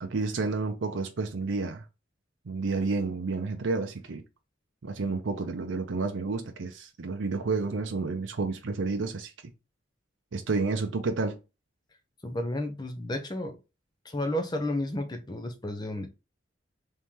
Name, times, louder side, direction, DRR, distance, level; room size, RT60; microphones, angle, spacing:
voice 1, 0.0-1.8 2.5-4.2 4.8-9.3 10.3-11.4, right 3 dB, 80° right, 0.6 m, -30 dB
voice 2, 12.2-13.6 14.0-16.1, left 1 dB, 20° left, 0.6 m, -32 dB
3.6 x 3.2 x 2.9 m
head